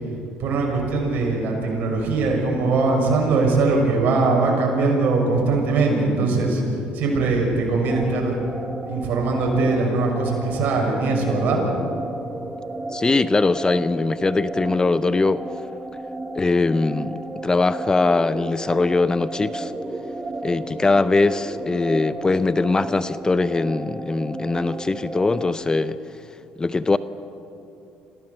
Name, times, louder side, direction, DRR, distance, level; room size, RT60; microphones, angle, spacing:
voice 1, 0.4-6.6 6.9-8.4 8.8-11.6, right 3 dB, 65° right, 6.4 m, -21 dB
sound 1, 7.9-25.5, right 2 dB, 20° right, 1.5 m, -33 dB
voice 2, 12.9-15.4 16.4-19.7 20.4-26.0 26.6-27.0, left 3 dB, 20° left, 0.6 m, -21 dB
26.5 x 16.0 x 7.0 m
supercardioid pair, 80°, 3 cm